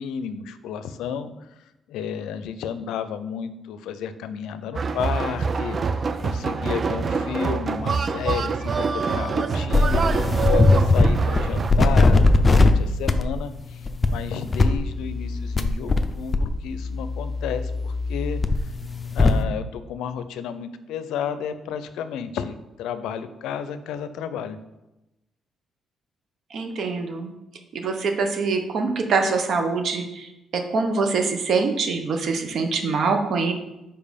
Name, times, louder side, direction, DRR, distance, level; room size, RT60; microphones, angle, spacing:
voice 1, 0.0-1.5 1.9-5.8 6.2-18.7 19.1-24.6, left 7 dB, 90° left, 11 dB, 0.5 m, -32 dB
sound 1, 4.7-11.7, right 4 dB, 40° right, 0.4 m, -25 dB
sound 2, 9.7-11.1 11.4-12.7 13.1-13.3 13.8-14.1 14.5-16.0 16.3-19.4, left 2 dB, 25° left, 0.6 m, -19 dB
voice 2, 26.5-27.3 27.7-30.3 30.7-33.5, right 4 dB, 65° right, 5 dB, 1.0 m, -24 dB
5.3 x 4.5 x 5.1 m, 0.94 s
cardioid pair, 90°, 0 cm